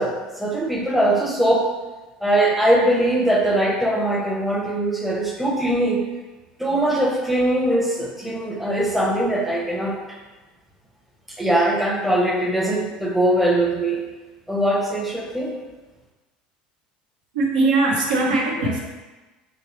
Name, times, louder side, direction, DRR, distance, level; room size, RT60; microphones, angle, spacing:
voice 1, 0.0-1.7 2.2-6.0 6.6-10.2 11.4-14.0 14.5-15.6, right 1 dB, 5° right, -1 dB, 0.7 m, -21 dB
voice 2, 17.3-18.8, right 2 dB, 75° right, -1 dB, 0.7 m, -20 dB
3.4 x 2.9 x 3.0 m, 1.2 s
hypercardioid pair, 70°, 4 cm